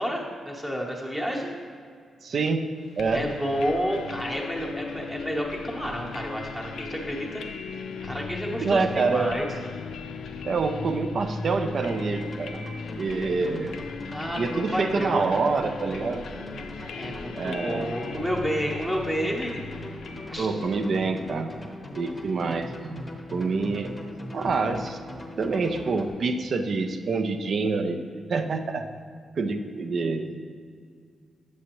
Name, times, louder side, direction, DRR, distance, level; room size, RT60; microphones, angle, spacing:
voice 1, 0.0-1.5 3.1-7.4 8.0-9.5 14.1-15.3 16.9-19.6 20.3-20.5, equal, 10° right, -2 dB, 0.9 m, -30 dB
voice 2, 2.2-2.7 3.0-3.3 8.6-9.4 10.4-12.6 13.0-13.7 14.4-16.3 17.3-18.0 20.4-21.6 21.9-23.0 23.3-24.0 24.3-25.0 25.4-28.9 29.4-30.4, right 4 dB, 50° right, 7 dB, 0.5 m, -26 dB
sound 1, 3.0-21.7, left 4 dB, 80° left, 0.4 m, -38 dB
sound 2, 11.9-26.1, left 1 dB, 20° left, 0.8 m, -41 dB
8.1 x 7.5 x 3.0 m, 2.2 s
wide cardioid pair, 145°, 0 cm